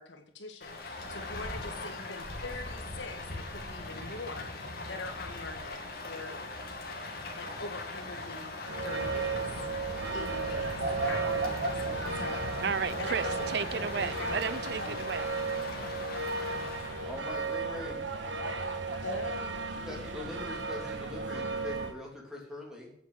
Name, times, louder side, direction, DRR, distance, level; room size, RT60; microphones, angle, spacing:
voice 1, 0.0-6.4 7.4-8.5 8.8-9.5 10.1-12.5 13.0-13.5 13.9-14.4 14.8-14.9 19.0-19.6, left 3 dB, 85° left, 4 dB, 1.9 m, -43 dB
Rain, 0.6-17.6, left 2 dB, 55° left, 2.4 m, -40 dB
sound 1, 8.6-21.9, right 3 dB, 85° right, 1.4 m, -34 dB
voice 2, 12.6-15.3, right 6 dB, 60° right, 15 dB, 0.5 m, -33 dB
voice 3, 16.6-18.1 19.8-22.9, left 1 dB, 5° right, -2 dB, 3.1 m, -42 dB
9.2 x 7.9 x 8.0 m, 0.75 s
head